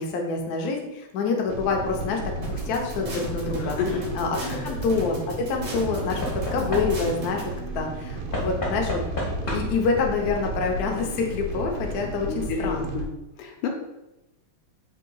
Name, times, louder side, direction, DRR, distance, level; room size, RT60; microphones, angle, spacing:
voice 1, 0.0-3.8 4.1-9.0 9.5-13.0, left 4 dB, 70° left, 1 dB, 0.9 m, -27 dB
sound 1, 1.5-13.1, right 2 dB, 75° right, 1.4 m, -34 dB
sound 2, 2.4-7.4, right 1 dB, 45° right, 0.9 m, -36 dB
Knock / Wood, 3.6-4.0 5.7-7.3 8.3-9.9 11.0-11.1 11.3-11.4, left 1 dB, 45° left, 0.6 m, -31 dB
voice 2, 12.3-13.1 13.4-13.7, left 5 dB, 90° left, 2 dB, 1.6 m, -30 dB
3.8 x 2.8 x 3.8 m, 0.94 s
omnidirectional pair, 2.4 m